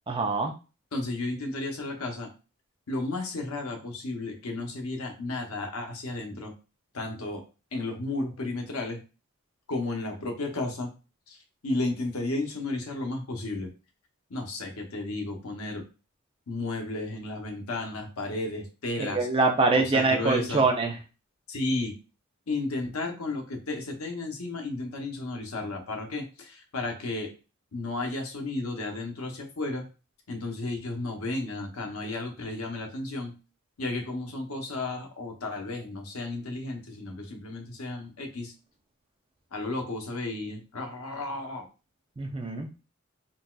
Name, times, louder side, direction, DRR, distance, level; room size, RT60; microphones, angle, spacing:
voice 1, 0.1-0.5 19.0-20.9 42.2-42.7, right 3 dB, 25° right, 4 dB, 0.4 m, -24 dB
voice 2, 0.9-2.3 2.9-6.5 6.9-7.4 7.7-9.0 9.7-10.9 11.3-11.4 11.6-13.7 14.3-15.8 16.5-19.3 19.7-20.6 21.5-21.9 22.5-27.3 27.7-29.8 30.3-33.3 33.8-38.5 39.5-41.7, left 2 dB, 90° left, 3 dB, 0.8 m, -33 dB
4.0 x 2.4 x 2.2 m, 0.31 s
head